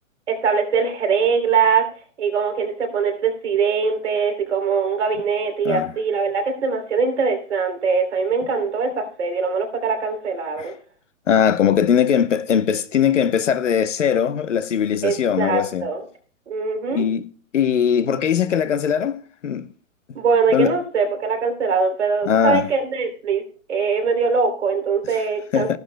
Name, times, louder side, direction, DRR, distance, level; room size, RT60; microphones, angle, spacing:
voice 1, 0.3-1.9 2.2-10.7 15.0-16.0 16.5-17.0 20.1-23.4 23.7-25.8, right 5 dB, 55° right, 3.3 m, -22 dB
voice 2, 11.3-15.9 16.9-17.3 17.5-19.7 20.1-20.2 20.5-20.7 22.3-22.7 25.5-25.8, left 8 dB, 60° left, 1.0 m, -20 dB
15.0 x 11.5 x 2.2 m
hypercardioid pair, 180°, 41 cm